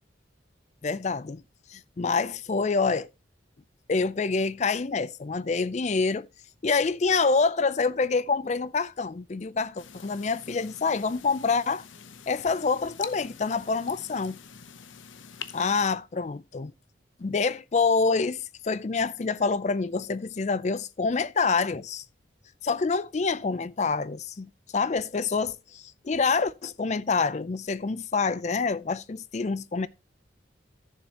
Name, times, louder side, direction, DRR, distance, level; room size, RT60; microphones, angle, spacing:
voice 1, 0.8-1.4 1.7-3.1 3.9-6.3 6.6-11.8 12.3-14.4 15.5-16.7 17.2-22.0 22.6-29.9, left 4 dB, 35° left, 0.4 m, -27 dB
sound 1, 9.8-15.9, left 8 dB, 85° left, 0.8 m, -45 dB
14.5 x 7.1 x 2.9 m
head